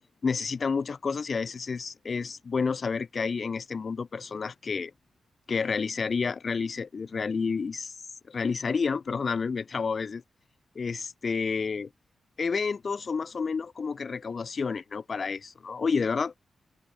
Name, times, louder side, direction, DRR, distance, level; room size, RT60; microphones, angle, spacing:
voice 1, 0.2-4.9 5.5-8.0 8.3-10.2 10.8-11.9 12.4-16.3, left 5 dB, 50° left, 6.9 m, -30 dB
cardioid pair, 75°, 0 cm